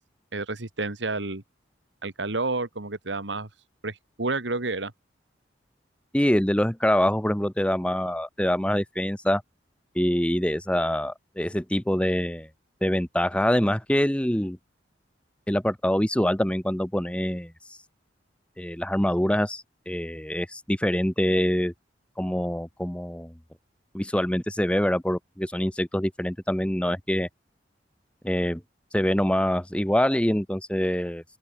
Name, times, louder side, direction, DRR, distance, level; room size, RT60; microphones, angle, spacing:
voice 1, 0.3-1.4 2.0-3.5 3.8-4.9, right 3 dB, 75° right, 2.1 m, -30 dB
voice 2, 6.1-9.4 9.9-12.5 12.8-14.6 15.5-17.5 18.6-21.7 22.2-23.3 23.9-27.3 28.2-28.6 28.9-31.2, equal, 5° left, 1.0 m, -25 dB
open air
head